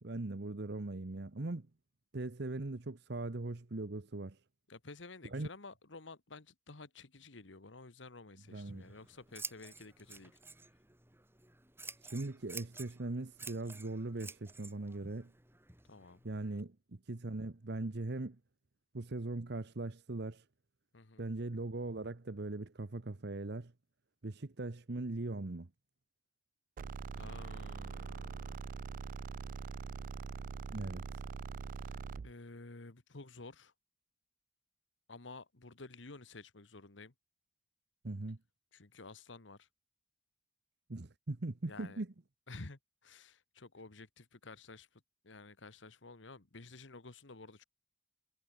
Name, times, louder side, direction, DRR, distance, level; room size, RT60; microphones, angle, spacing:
voice 1, 0.0-1.7 2.1-4.4 5.3-5.5 8.5-8.8 12.0-15.3 16.2-16.8 17.1-18.4 18.9-20.4 21.2-23.7 24.2-25.7 30.7-31.2 38.0-38.4 40.9-42.1, right 2 dB, 65° right, 1.0 m, -40 dB
voice 2, 4.7-10.4 15.8-16.2 20.9-21.3 27.1-28.6 31.8-33.7 35.1-37.1 38.7-39.7 41.7-42.0 42.5-47.6, left 3 dB, 90° left, 1.6 m, -52 dB
Scissors, 8.5-16.6, right 4 dB, 15° right, 2.7 m, -51 dB
sound 1, 26.8-32.3, right 5 dB, 45° right, 0.3 m, -43 dB
head